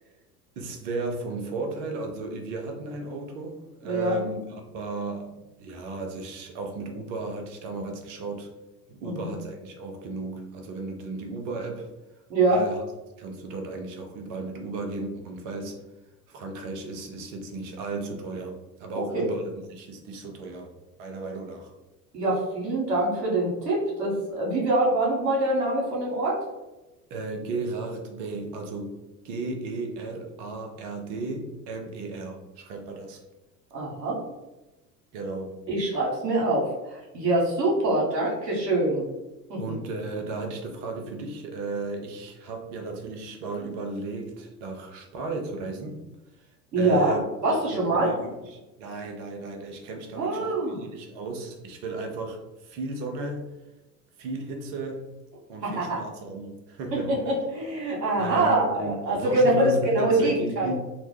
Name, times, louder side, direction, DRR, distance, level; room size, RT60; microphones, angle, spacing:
voice 1, 0.6-4.4 4.7-8.5 8.9-11.9 12.5-12.8 13.2-15.8 16.3-19.4 19.7-20.7 21.0-21.7 27.1-29.0 29.2-33.2 35.1-35.6 39.6-46.0 46.8-47.2 47.7-53.5 54.2-55.1 55.5-57.3 58.2-60.7, right 3 dB, 50° right, 3 dB, 0.7 m, -34 dB
voice 2, 3.8-4.2 9.0-9.3 12.3-12.6 18.9-19.3 22.1-26.4 33.7-34.2 35.7-39.0 39.5-39.6 46.7-47.1 47.4-48.1 50.2-50.8 55.6-56.0 56.9-60.7, right 2 dB, 75° right, -3 dB, 1.1 m, -24 dB
3.0 x 2.1 x 3.2 m, 1.0 s
figure-of-eight pair, 70°, 50 cm